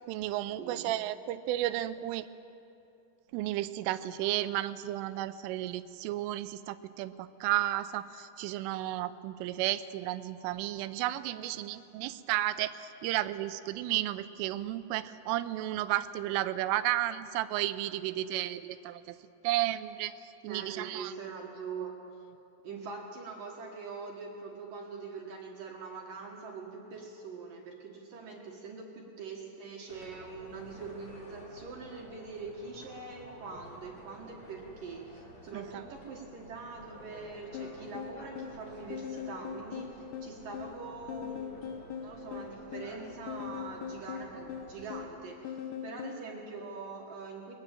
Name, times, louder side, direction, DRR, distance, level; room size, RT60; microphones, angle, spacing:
voice 1, 0.0-2.3 3.3-19.2 19.4-20.2 20.4-21.1 35.5-35.6, right 14 dB, 85° right, 13 dB, 3.2 m, -33 dB
voice 2, 0.6-0.9 20.5-22.0 22.6-41.7 42.0-47.5, right 4 dB, 60° right, 0 dB, 2.6 m, -43 dB
sound 1, 29.9-45.0, left 1 dB, 35° left, 2.3 m, -52 dB
sound 2, 37.5-46.2, left 8 dB, 75° left, 3.3 m, -41 dB
21.5 x 19.5 x 7.6 m, 2.8 s
omnidirectional pair, 5.6 m